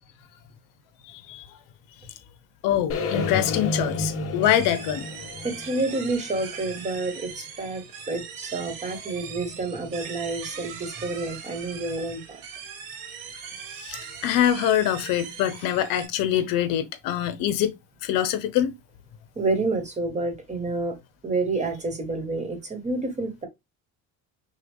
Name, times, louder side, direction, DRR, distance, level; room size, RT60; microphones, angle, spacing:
voice 1, 1.0-1.5 2.6-5.1 13.8-17.7 18.0-18.7, left 11 dB, 70° left, 0.8 m, -24 dB
sound 1, 2.9-6.9, left 3 dB, 40° left, 0.9 m, -31 dB
sound 2, 4.4-16.1, right 7 dB, 70° right, 1.5 m, -40 dB
voice 2, 5.4-12.4 19.4-21.0 21.2-23.5, right 2 dB, 20° right, 1.3 m, -29 dB
6.4 x 2.3 x 3.5 m
cardioid pair, 145°, 34 cm